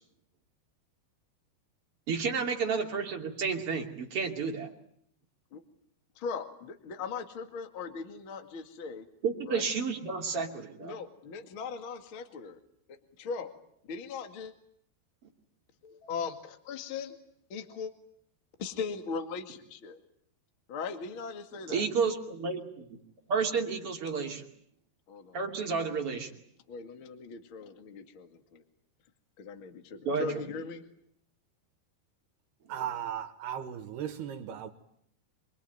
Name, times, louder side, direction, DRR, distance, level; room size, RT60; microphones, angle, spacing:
voice 1, 2.1-4.7 9.2-11.0 21.7-22.9 23.3-24.4 25.3-26.3 30.0-30.3, right 5 dB, 40° right, 3.2 m, -31 dB
voice 2, 6.2-9.1 9.5-9.7 10.8-12.6 13.2-13.5 13.9-14.5 15.8-17.2 17.5-17.9 18.6-20.0 20.7-21.9 25.1-25.4 26.7-28.6 29.4-30.8, left 5 dB, 40° left, 2.3 m, -39 dB
voice 3, 32.7-34.7, right 9 dB, 80° right, 3.6 m, -36 dB
26.5 x 22.5 x 9.4 m
omnidirectional pair, 4.6 m